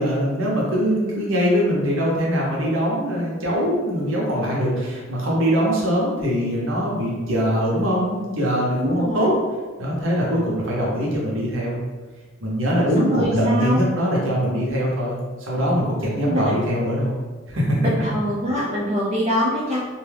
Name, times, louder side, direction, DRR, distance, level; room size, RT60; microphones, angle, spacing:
voice 1, 0.0-9.3 9.8-11.8 12.4-17.1 17.5-17.8, equal, 70° right, -4 dB, 0.9 m, -22 dB
voice 2, 8.8-9.3 12.9-13.8 16.2-16.6 17.8-19.8, equal, 30° right, -8 dB, 0.5 m, -24 dB
2.6 x 2.3 x 3.3 m, 1.4 s
head